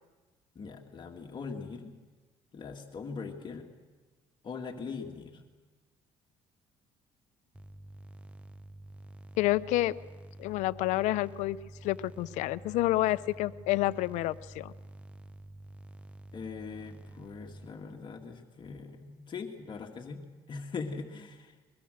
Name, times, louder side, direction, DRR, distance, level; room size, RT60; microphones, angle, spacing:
voice 1, 0.6-1.9 2.5-3.7 4.4-5.4 16.3-20.2 20.5-21.6, left 5 dB, 40° left, 2 dB, 2.0 m, -41 dB
sound 1, 7.5-17.7, right 1 dB, 10° right, 0.8 m, -49 dB
voice 2, 9.4-10.0 10.4-11.6 11.8-14.7, left 16 dB, 80° left, 15 dB, 0.7 m, -29 dB
22.5 x 21.5 x 6.5 m, 1.3 s
cardioid pair, 100°, 12 cm